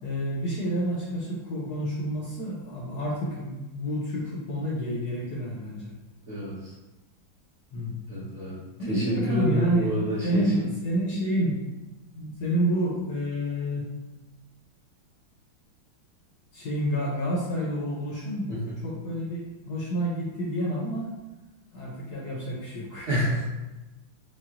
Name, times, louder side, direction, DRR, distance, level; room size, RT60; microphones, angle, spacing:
voice 1, 0.0-5.9 7.7-8.1 8.8-11.6 12.1-13.9 16.5-21.1 21.7-23.2, equal, 70° left, -5 dB, 1.0 m, -29 dB
voice 2, 8.1-8.6 8.9-10.6 18.5-18.7 23.1-23.5, equal, 50° right, -10 dB, 0.9 m, -27 dB
5.7 x 2.3 x 2.4 m, 1.0 s
omnidirectional pair, 2.3 m